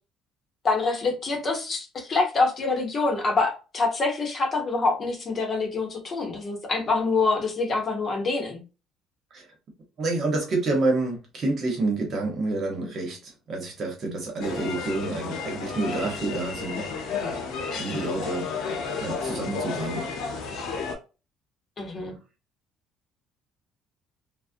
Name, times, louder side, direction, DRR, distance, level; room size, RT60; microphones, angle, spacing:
voice 1, 0.6-8.6 21.8-22.1, left 3 dB, 40° left, 0.8 m, -25 dB
voice 2, 10.0-16.9 17.7-18.5 18.9-20.1, right 2 dB, 50° right, 0.9 m, -28 dB
sound 1, 14.4-21.0, left 4 dB, 75° left, 0.6 m, -32 dB
2.4 x 2.0 x 2.5 m
cardioid pair, 100°, 0 cm